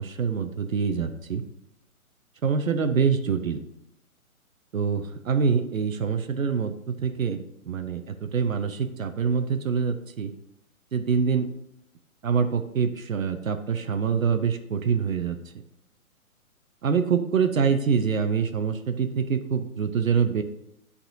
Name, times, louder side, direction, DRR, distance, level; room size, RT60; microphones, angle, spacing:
voice 1, 0.0-1.4 2.4-3.6 4.7-10.3 10.9-11.5 12.2-15.4 16.8-20.4, right 6 dB, 65° right, 8 dB, 0.8 m, -25 dB
10.5 x 4.2 x 2.7 m, 0.77 s
figure-of-eight pair, 135°, 43 cm